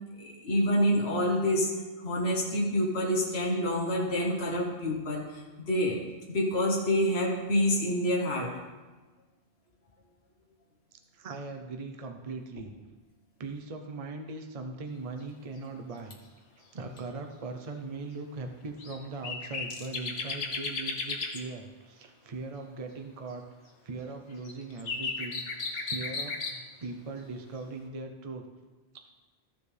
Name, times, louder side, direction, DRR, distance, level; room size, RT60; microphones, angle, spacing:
voice 1, 0.2-1.7 2.0-6.0 6.3-8.6, equal, 70° left, -2 dB, 1.6 m, -27 dB
voice 2, 10.9-12.7 13.4-16.2 16.7-23.4 23.8-28.4, right 3 dB, 35° right, 4 dB, 0.8 m, -40 dB
sound 1, 18.8-19.0 19.2-21.4 24.4-26.6, left 4 dB, 85° left, 1.3 m, -34 dB
14.0 x 7.0 x 3.4 m, 1.3 s
omnidirectional pair, 1.1 m